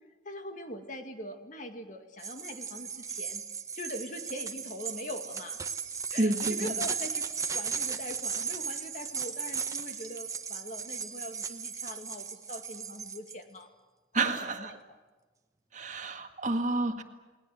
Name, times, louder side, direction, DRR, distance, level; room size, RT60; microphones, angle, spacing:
voice 1, 0.2-3.4 3.7-5.6 6.1-13.7 14.1-15.0, left 1 dB, 45° left, 5 dB, 2.3 m, -42 dB
sound 1, 2.2-13.3, right 6 dB, 15° right, 1.2 m, -36 dB
voice 2, 6.2-6.7 14.1-14.7 15.7-17.0, right 2 dB, 40° right, 5 dB, 1.9 m, -29 dB
29.5 x 20.5 x 7.8 m, 1.2 s
head